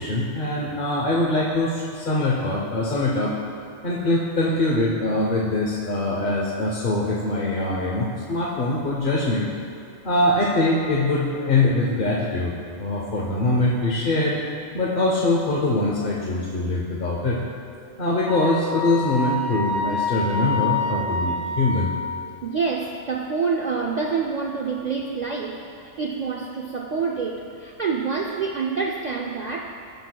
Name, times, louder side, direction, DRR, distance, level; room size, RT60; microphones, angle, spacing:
voice 1, 0.0-3.3 3.8-9.5 10.0-12.5 12.8-14.4 14.7-17.4 18.0-21.9, left 2 dB, 45° left, -4 dB, 0.9 m, -23 dB
Wind instrument woodwind instrument, 18.3-22.1, left 2 dB, 50° right, 0.8 m, -27 dB
voice 2, 22.2-29.8, right 5 dB, 75° right, 1 dB, 0.4 m, -27 dB
15.5 x 6.2 x 2.2 m, 2.5 s
omnidirectional pair, 1.3 m